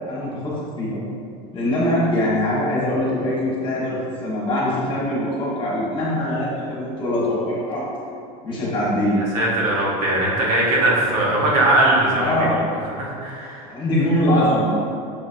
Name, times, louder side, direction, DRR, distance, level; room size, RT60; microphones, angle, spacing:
voice 1, 0.1-1.0 1.5-7.8 8.4-9.2 12.1-12.6 13.7-14.7, left 1 dB, 25° left, -7 dB, 1.5 m, -22 dB
voice 2, 9.3-12.5 13.0-13.7, right 1 dB, 80° right, -4 dB, 1.2 m, -20 dB
6.4 x 2.9 x 2.7 m, 2.4 s
supercardioid pair, 135°, 19 cm